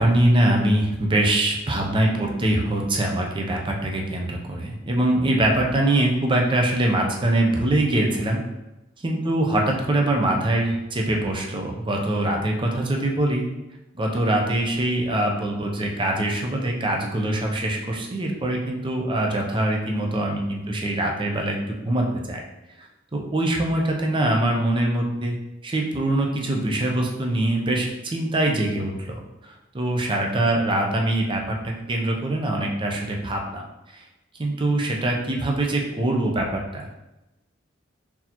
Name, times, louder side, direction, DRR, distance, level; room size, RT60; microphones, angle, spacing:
voice 1, 0.0-8.4 9.0-13.5 13.9-22.4 23.1-25.4 25.6-33.6 33.9-34.0 34.4-36.9, right 1 dB, 25° right, 0 dB, 0.5 m, -23 dB
4.1 x 2.8 x 2.8 m, 0.98 s
head